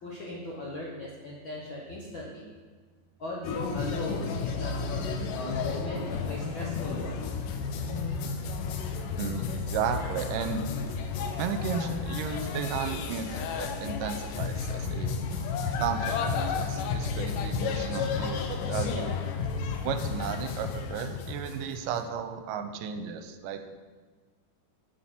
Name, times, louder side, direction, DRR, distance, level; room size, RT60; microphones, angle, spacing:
voice 1, 0.0-2.4 3.2-7.3, left 1 dB, 65° left, -4 dB, 1.2 m, -38 dB
sound 1, 3.4-22.0, left 5 dB, 80° left, 2.3 m, -32 dB
sound 2, 8.5-18.7, left 1 dB, 40° right, 2.3 m, -48 dB
voice 2, 9.2-10.7 11.4-15.1 15.8-19.2 19.8-23.7, right 7 dB, 85° right, 8 dB, 2.2 m, -34 dB
8.6 x 6.6 x 5.9 m, 1.5 s
omnidirectional pair, 3.9 m